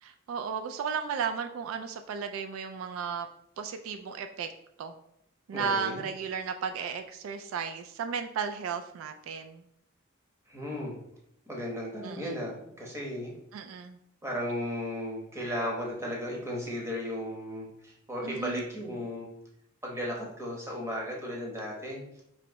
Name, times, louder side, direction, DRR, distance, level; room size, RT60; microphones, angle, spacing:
voice 1, 0.0-3.3 3.6-4.5 4.8-4.9 5.5-9.6 12.0-12.4 13.5-14.0 18.2-18.6, right 6 dB, 70° right, 8 dB, 0.3 m, -34 dB
voice 2, 5.5-6.0 10.5-10.9 11.5-13.3 14.2-19.3 19.8-22.0, equal, 15° right, -2 dB, 0.9 m, -35 dB
3.0 x 2.9 x 4.5 m, 0.76 s
head